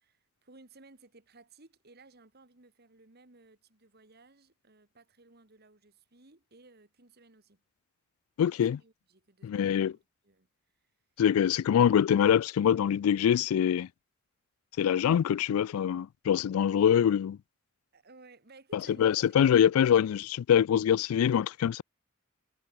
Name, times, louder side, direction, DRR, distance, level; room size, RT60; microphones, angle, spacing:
voice 1, 0.0-7.6 8.8-10.5 17.9-19.2, right 3 dB, 50° right, 2.1 m, -58 dB
voice 2, 8.4-8.8 9.4-9.9 11.2-13.9 14.8-17.4 18.7-21.8, left 9 dB, 90° left, 0.3 m, -24 dB
head